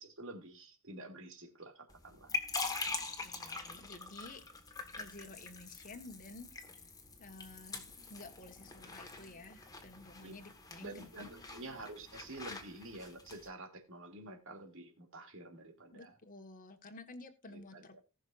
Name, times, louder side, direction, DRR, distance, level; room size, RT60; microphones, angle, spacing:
voice 1, 0.0-2.3 10.2-10.3 10.8-16.1 17.5-17.8, right 2 dB, 60° right, 4 dB, 2.6 m, -49 dB
sound 1, 1.9-13.5, left 4 dB, 15° left, 1.5 m, -44 dB
voice 2, 2.8-4.4 5.0-6.8 7.2-11.1 15.9-18.0, left 2 dB, 40° left, 6 dB, 1.4 m, -52 dB
19.0 x 6.3 x 2.5 m, 0.27 s
head